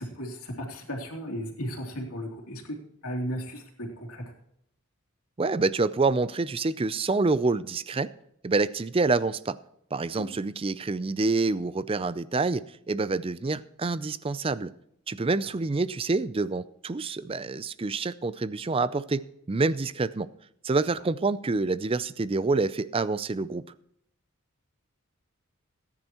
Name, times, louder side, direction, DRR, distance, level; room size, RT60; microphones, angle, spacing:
voice 1, 0.0-2.8 3.0-4.2 10.2-10.3, equal, 85° left, 0 dB, 3.0 m, -35 dB
voice 2, 5.4-8.1 8.4-9.6 9.9-14.7 15.1-20.3 20.6-23.6, right 3 dB, 25° right, 16 dB, 0.4 m, -27 dB
18.5 x 9.9 x 3.0 m, 0.73 s
head